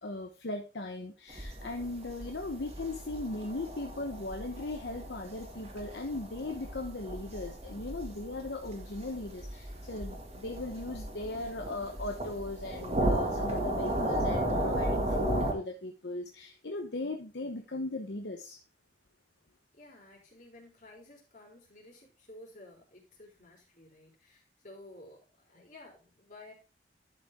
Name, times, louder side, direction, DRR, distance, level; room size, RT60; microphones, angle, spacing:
voice 1, 0.0-18.6, left 2 dB, 70° left, 1.0 m, -38 dB
sound 1, 1.3-15.5, right 1 dB, 35° right, 2.0 m, -35 dB
voice 2, 19.7-26.5, left 1 dB, 45° left, 3.9 m, -53 dB
12.0 x 5.4 x 3.6 m
head